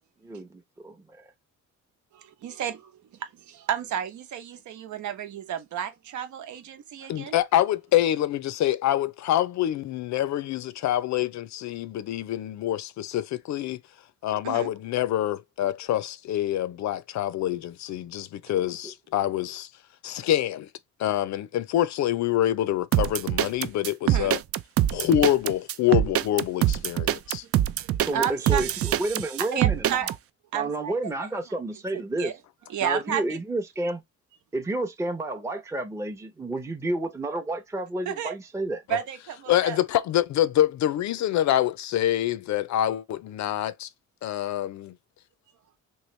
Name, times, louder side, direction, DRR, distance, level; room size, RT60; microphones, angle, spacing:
voice 1, 0.2-1.3 18.8-18.9 28.1-30.1 30.5-32.3 32.8-34.0 34.5-38.8, right 2 dB, 10° right, 0.7 m, -30 dB
voice 2, 2.1-7.4 14.4-14.7 24.0-24.3 27.6-28.6 29.5-30.1 30.5-31.1 32.2-32.3 32.7-33.4 38.1-38.4 38.9-39.8, right 9 dB, 70° right, 0.9 m, -32 dB
voice 3, 7.1-13.8 14.2-19.7 20.0-20.7 21.0-24.4 24.9-27.4 38.9-39.0 39.5-43.9 44.2-45.0, left 12 dB, 65° left, 0.5 m, -26 dB
sound 1, 22.9-30.2, right 12 dB, 50° right, 0.4 m, -24 dB
3.1 x 2.9 x 3.1 m
cardioid pair, 90°, 30 cm